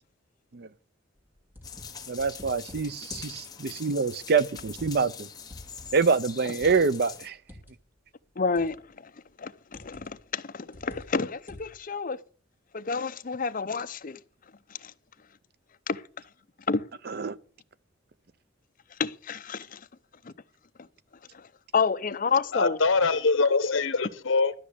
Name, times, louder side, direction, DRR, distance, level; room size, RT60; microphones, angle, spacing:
sound 1, 1.2-3.4 4.1-5.2 5.5-7.7 8.6-8.9 9.7-10.2 10.7-11.8, left 1 dB, 10° right, 2.8 m, -48 dB
sound 2, 1.6-7.3, left 6 dB, 20° left, 1.1 m, -43 dB
voice 1, 2.1-5.3 5.9-7.4 17.1-17.4, right 5 dB, 55° right, 0.5 m, -26 dB
voice 2, 8.4-8.8 9.4-12.2 12.7-14.2 14.8-14.9 15.9-16.0 16.7-16.8 19.0-19.8 20.2-20.3 21.3-21.4 21.7-22.8, left 5 dB, 45° left, 0.6 m, -29 dB
voice 3, 22.5-24.5, left 4 dB, 80° left, 0.9 m, -23 dB
12.5 x 6.1 x 8.3 m
head